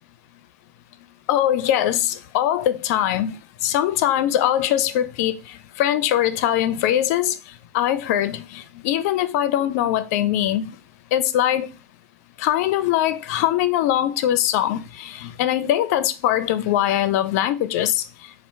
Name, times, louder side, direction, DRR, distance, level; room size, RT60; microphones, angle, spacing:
voice 1, 1.3-3.3 3.6-5.4 5.8-7.4 7.7-10.7 11.1-11.7 12.4-18.0, left 12 dB, 70° left, 0.5 m, -21 dB
4.3 x 2.4 x 4.6 m
hypercardioid pair, 85°, 9 cm